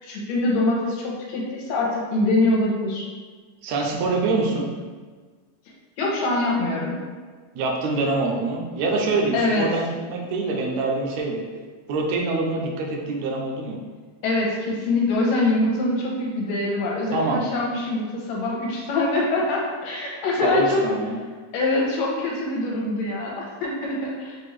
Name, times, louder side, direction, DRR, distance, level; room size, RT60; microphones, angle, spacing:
voice 1, 0.0-3.1 6.0-7.0 9.3-9.7 14.2-20.8 21.5-24.4, left 2 dB, 75° left, -3 dB, 2.1 m, -24 dB
voice 2, 3.6-4.7 7.5-11.4 11.9-13.8 17.1-17.4 20.4-21.2, right 3 dB, 75° right, 0 dB, 1.9 m, -25 dB
5.9 x 2.6 x 3.1 m, 1.5 s
omnidirectional pair, 3.4 m